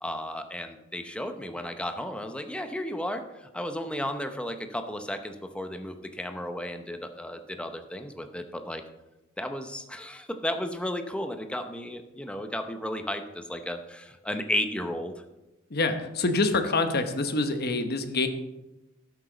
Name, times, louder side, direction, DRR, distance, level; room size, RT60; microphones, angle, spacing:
voice 1, 0.0-8.8 9.4-15.1, left 1 dB, 5° left, 7 dB, 0.7 m, -34 dB
voice 2, 15.7-18.3, left 3 dB, 50° left, 8 dB, 1.0 m, -26 dB
12.5 x 8.1 x 3.9 m, 1.0 s
head